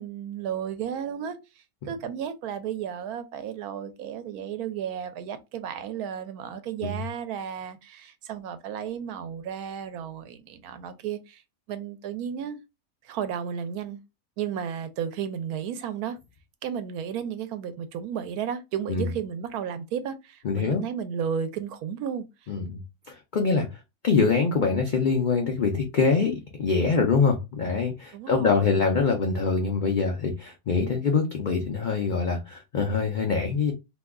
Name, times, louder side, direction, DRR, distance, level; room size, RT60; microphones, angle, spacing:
voice 1, 0.0-11.4 11.7-12.6 13.0-14.0 14.4-16.2 16.6-22.2 28.1-28.8, right 8 dB, 85° right, 1.1 m, -33 dB
voice 2, 20.4-20.8 22.5-22.8 23.1-23.7 24.0-33.7, left 4 dB, 85° left, 0.4 m, -24 dB
2.8 x 2.2 x 3.5 m
omnidirectional pair, 1.5 m